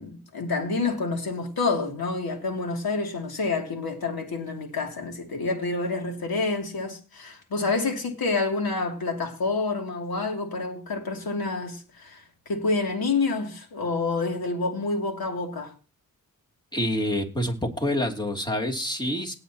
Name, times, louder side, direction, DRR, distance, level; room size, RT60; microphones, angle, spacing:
voice 1, 0.0-15.7, left 3 dB, 80° left, 2.8 m, -28 dB
voice 2, 16.7-19.3, left 1 dB, 10° left, 2.8 m, -27 dB
18.5 x 8.7 x 2.9 m
cardioid pair, 75°, 36 cm